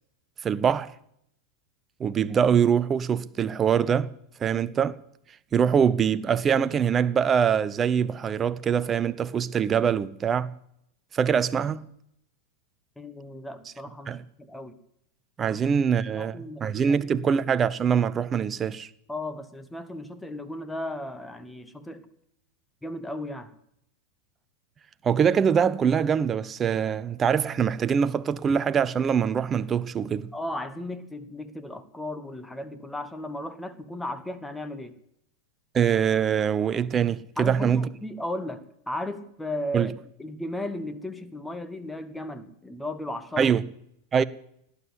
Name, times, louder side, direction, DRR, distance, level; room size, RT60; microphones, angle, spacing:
voice 1, 0.4-0.9 2.0-4.1 4.4-5.0 5.5-10.5 11.1-11.9 14.1-14.2 15.4-16.3 16.6-18.9 25.0-30.3 35.7-37.9 39.7-39.9 43.4-43.6 44.1-44.2, right 7 dB, 20° right, 0.7 m, -23 dB
voice 2, 13.0-14.8 16.1-17.3 19.1-22.1 22.8-23.5 30.3-35.0 37.4-39.9 40.2-43.5, left 1 dB, 5° left, 1.4 m, -35 dB
18.0 x 9.8 x 8.1 m
figure-of-eight pair, 90°, 0 cm